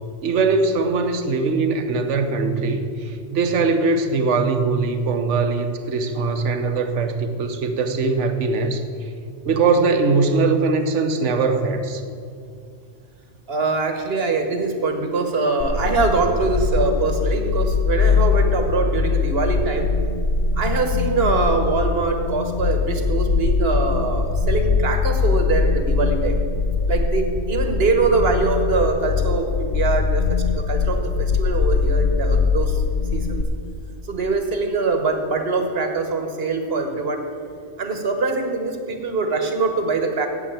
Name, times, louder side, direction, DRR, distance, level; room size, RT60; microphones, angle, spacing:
voice 1, 0.2-8.8 9.4-12.0, right 4 dB, 70° right, 8 dB, 1.2 m, -21 dB
voice 2, 13.5-19.9 20.6-26.4 26.9-32.8 33.1-33.4 34.0-37.2 37.8-40.3, right 3 dB, 55° right, 5 dB, 1.4 m, -23 dB
sound 1, 15.6-33.4, left 5 dB, 55° left, 0.8 m, -22 dB
8.6 x 8.1 x 8.5 m, 2.3 s
omnidirectional pair, 1.3 m